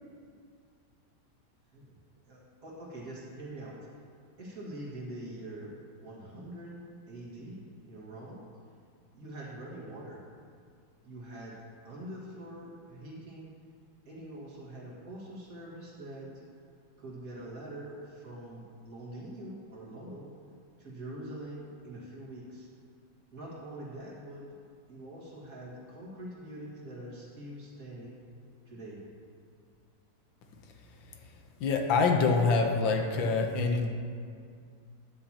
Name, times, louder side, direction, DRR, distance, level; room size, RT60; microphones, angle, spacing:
voice 1, 2.3-3.8 4.4-5.7 6.0-8.4 9.1-10.2 11.0-13.5 14.1-16.4 17.0-20.3 20.8-22.7 23.3-24.5 24.9-28.2 28.7-29.0, right 1 dB, 45° right, -5 dB, 2.3 m, -44 dB
voice 2, 31.6-33.9, left 4 dB, 85° left, 3 dB, 1.7 m, -25 dB
13.0 x 9.9 x 2.9 m, 2.2 s
omnidirectional pair, 2.0 m